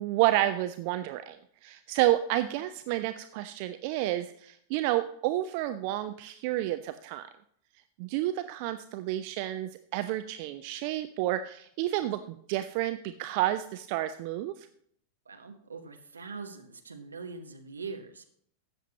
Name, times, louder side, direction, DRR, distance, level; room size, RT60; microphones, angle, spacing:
voice 1, 0.0-1.4 1.6-7.3 8.0-14.7, right 14 dB, 45° right, 10 dB, 0.4 m, -30 dB
voice 2, 15.2-18.2, right 4 dB, 75° right, 5 dB, 1.1 m, -42 dB
13.0 x 8.2 x 3.0 m, 0.65 s
figure-of-eight pair, 90°, 0 cm